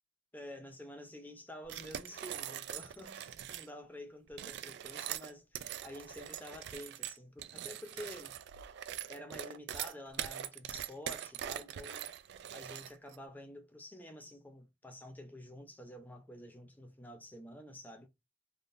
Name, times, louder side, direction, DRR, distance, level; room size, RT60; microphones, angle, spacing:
voice 1, 0.3-8.4 9.1-12.1 12.5-18.1, left 1 dB, 10° left, 0.5 m, -49 dB
sound 1, 1.6-3.7 4.3-13.2, right 10 dB, 60° right, 0.3 m, -42 dB
3.5 x 2.6 x 2.5 m
head